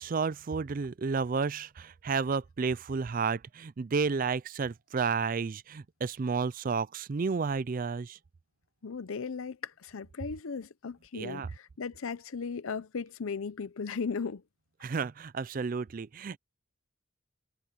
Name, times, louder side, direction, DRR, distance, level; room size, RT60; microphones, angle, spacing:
voice 1, 0.0-8.2 11.1-11.5 14.8-16.4, right 5 dB, 40° right, 0.4 m, -31 dB
voice 2, 8.8-14.4, left 5 dB, 75° left, 0.6 m, -37 dB
head